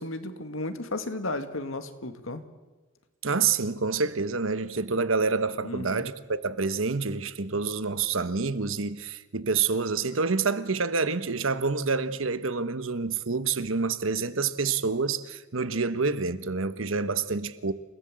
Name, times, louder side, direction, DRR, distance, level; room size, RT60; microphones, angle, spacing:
voice 1, 0.0-2.4 5.6-6.1, left 2 dB, 85° left, 2.1 m, -34 dB
voice 2, 3.2-17.7, right 4 dB, 85° right, 1.2 m, -27 dB
28.5 x 18.0 x 7.7 m
head